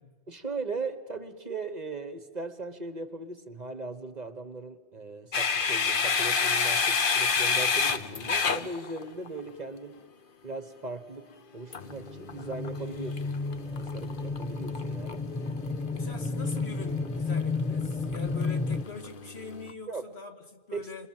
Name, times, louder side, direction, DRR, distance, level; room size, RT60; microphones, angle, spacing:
voice 1, 0.3-10.0 10.4-15.2 16.1-16.2 19.9-20.0 20.7-21.1, right 3 dB, 40° right, 1.4 m, -38 dB
sound 1, 5.3-9.4 11.7-19.7, left 5 dB, 55° left, 1.2 m, -31 dB
sound 2, 11.9-18.8, left 4 dB, 5° left, 0.8 m, -32 dB
voice 2, 15.9-21.1, left 3 dB, 70° left, 2.4 m, -43 dB
28.0 x 23.5 x 7.6 m
omnidirectional pair, 1.1 m